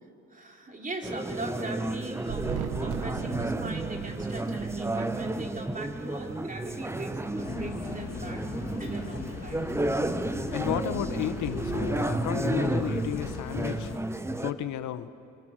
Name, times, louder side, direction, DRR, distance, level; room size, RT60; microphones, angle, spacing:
voice 1, 0.3-8.5 8.8-9.6, right 2 dB, 25° right, 1 dB, 3.9 m, -40 dB
sound 1, 1.0-14.5, right 2 dB, 10° right, 0.9 m, -32 dB
Thunder, 2.2-12.0, right 8 dB, 90° right, 1.3 m, -40 dB
sound 2, 7.4-14.0, left 6 dB, 55° left, 2.3 m, -40 dB
voice 2, 10.5-13.9 14.4-15.1, left 12 dB, 75° left, 12 dB, 0.9 m, -32 dB
26.0 x 26.0 x 6.4 m, 2.7 s
cardioid pair, 90°, 30 cm